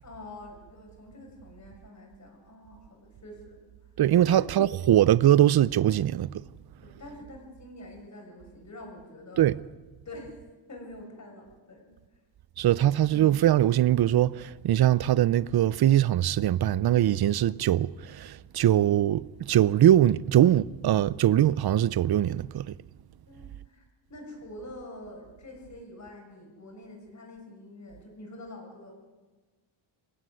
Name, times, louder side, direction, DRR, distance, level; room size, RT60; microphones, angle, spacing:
voice 1, 0.0-3.6 4.2-4.4 6.8-9.5 10.0-10.3 10.7-11.9 23.3-23.8 24.1-28.9, left 1 dB, 35° left, 6.8 m, -46 dB
voice 2, 4.0-6.4 9.4-9.6 12.6-22.7, right 12 dB, 55° right, 0.7 m, -22 dB
26.0 x 16.0 x 9.6 m
wide cardioid pair, 155°, 47 cm